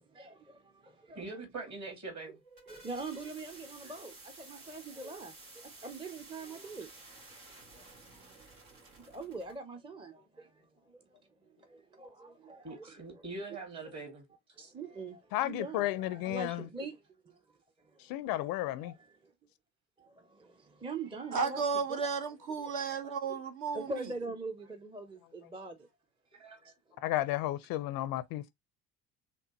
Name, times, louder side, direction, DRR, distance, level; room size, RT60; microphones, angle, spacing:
voice 1, 0.0-1.2 2.7-7.1 8.2-8.3 8.9-13.2 14.6-18.2 18.8-19.3 20.0-21.6 21.9-22.1 22.6-22.7 23.3-23.4 23.7-25.9 26.6-27.0, right 3 dB, 10° right, 0.6 m, -44 dB
voice 2, 1.1-2.4 12.6-14.3 14.6-14.7 26.4-26.6, right 3 dB, 35° right, 2.2 m, -43 dB
sound 1, 2.3-9.6, right 2 dB, 70° right, 1.9 m, -53 dB
voice 3, 15.3-16.7 18.0-18.9 27.0-28.5, left 15 dB, 50° left, 0.5 m, -33 dB
voice 4, 21.3-23.9, right 5 dB, 55° right, 1.0 m, -33 dB
4.3 x 3.3 x 2.9 m
figure-of-eight pair, 55°, 46 cm